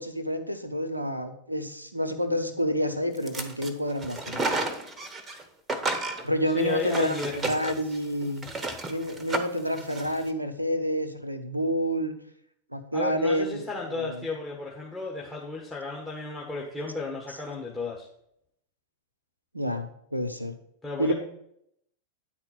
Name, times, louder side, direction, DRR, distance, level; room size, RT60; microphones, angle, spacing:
voice 1, 0.0-4.6 6.2-8.5 8.9-12.1 12.7-14.3 19.5-20.6 21.0-21.1, equal, 85° right, 8 dB, 0.8 m, -29 dB
sound 1, 3.2-3.7 4.0-5.4 5.7-10.2, right 2 dB, 15° right, 1.0 m, -32 dB
voice 2, 6.5-7.3 12.9-18.1 20.8-21.1, left 3 dB, 10° left, -4 dB, 1.5 m, -34 dB
9.4 x 4.4 x 5.8 m, 0.72 s
figure-of-eight pair, 90°, 0 cm